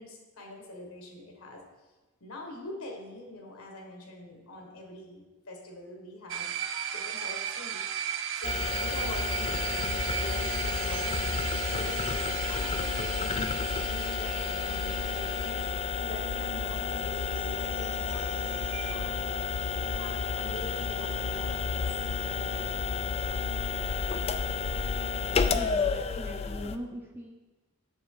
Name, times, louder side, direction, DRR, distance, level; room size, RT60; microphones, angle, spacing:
voice 1, 0.0-1.6 2.2-6.5 6.9-7.9 8.3-15.6 16.0-18.5 18.9-19.3 19.9-22.8, left 1 dB, 75° left, 1 dB, 1.5 m, -44 dB
sound 1, 6.3-18.9, right 9 dB, 60° right, 0.5 m, -37 dB
sound 2, 6.6-16.6, right 4 dB, 35° right, 1.1 m, -53 dB
sound 3, 8.4-26.8, left 5 dB, 30° left, 0.3 m, -31 dB
voice 2, 25.5-27.4, equal, 10° right, 1 dB, 0.6 m, -41 dB
7.0 x 6.4 x 3.8 m, 1.2 s
head